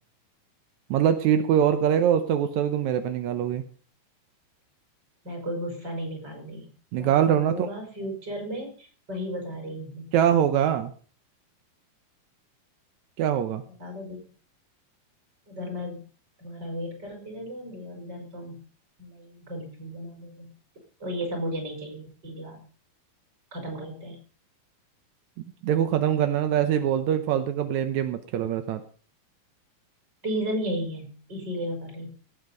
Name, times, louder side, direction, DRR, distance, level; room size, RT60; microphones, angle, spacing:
voice 1, 0.9-3.6 6.9-7.6 10.1-10.9 13.2-13.6 25.6-28.8, right 9 dB, 75° right, 9 dB, 1.8 m, -23 dB
voice 2, 5.2-6.7 6.9-10.1 13.8-14.3 15.5-16.0 16.4-18.6 19.0-20.5 21.0-22.6 23.5-24.2 30.2-32.1, equal, 25° right, 2 dB, 5.5 m, -34 dB
18.5 x 8.5 x 5.3 m, 0.42 s
omnidirectional pair, 4.3 m